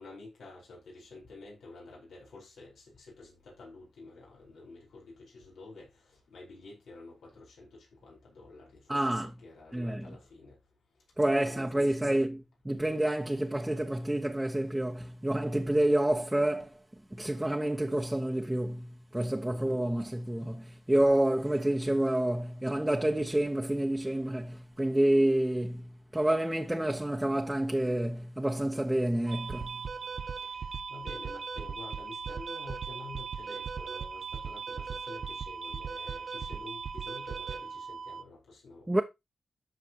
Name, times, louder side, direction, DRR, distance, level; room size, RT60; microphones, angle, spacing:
voice 1, 0.0-10.6 11.2-12.2 12.7-12.8 19.5-19.8 30.4-39.0, left 3 dB, 85° left, 4.6 m, -50 dB
voice 2, 8.9-9.3 9.7-10.1 11.2-12.4 12.6-16.8 17.1-29.8 38.9-39.0, right 1 dB, 15° right, 1.2 m, -28 dB
sound 1, 29.3-38.2, right 5 dB, 60° right, 0.5 m, -38 dB
13.0 x 5.1 x 3.0 m
cardioid pair, 55°, 0 cm